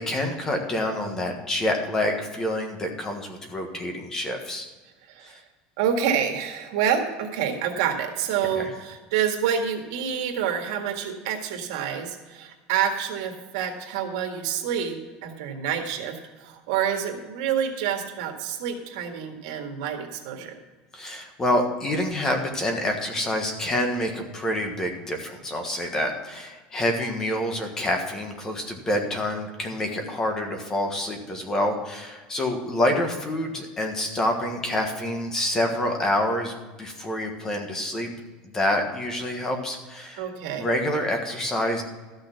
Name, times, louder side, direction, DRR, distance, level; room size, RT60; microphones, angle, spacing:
voice 1, 0.0-4.7 5.2-5.4 8.5-8.7 20.9-38.1 38.4-40.3 40.6-41.8, left 1 dB, 15° left, 4 dB, 1.4 m, -27 dB
voice 2, 5.1-5.4 5.8-20.6 40.2-40.6, right 8 dB, 80° right, 3 dB, 1.9 m, -28 dB
13.5 x 6.4 x 5.9 m, 1.3 s
cardioid pair, 165°, 3 cm